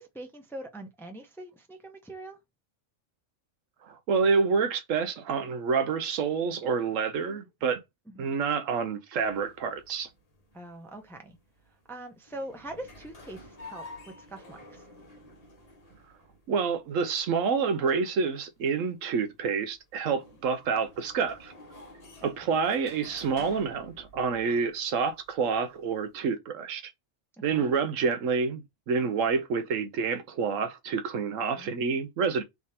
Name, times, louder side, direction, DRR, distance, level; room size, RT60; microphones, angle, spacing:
voice 1, 0.0-2.4 7.3-7.5 8.1-8.4 10.5-11.4 11.7-14.9 22.2-22.3 27.4-27.7 31.6-31.7, right 1 dB, ahead, 0.6 m, -43 dB
voice 2, 3.8-7.8 8.2-10.1 16.5-21.5 22.2-26.9 27.4-32.4, right 5 dB, 80° right, 1.1 m, -28 dB
sound 1, 9.2-26.2, left 1 dB, 30° left, 1.0 m, -51 dB
3.5 x 2.8 x 4.2 m
omnidirectional pair, 1.3 m